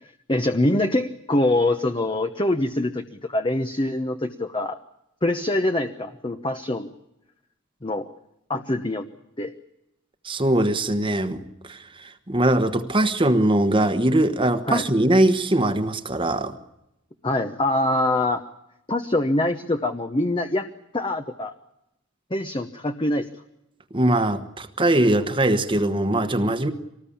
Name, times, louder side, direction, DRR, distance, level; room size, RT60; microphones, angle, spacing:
voice 1, 0.0-4.8 5.2-6.9 7.8-8.1 8.5-9.1 9.4-9.5 14.7-14.8 17.2-18.4 18.9-20.7 20.9-21.5 22.3-23.3, left 1 dB, 25° left, 7 dB, 1.0 m, -24 dB
voice 2, 10.2-11.4 11.6-16.5 23.9-26.7, right 1 dB, 25° right, 7 dB, 1.3 m, -21 dB
25.0 x 19.5 x 8.7 m, 0.85 s
head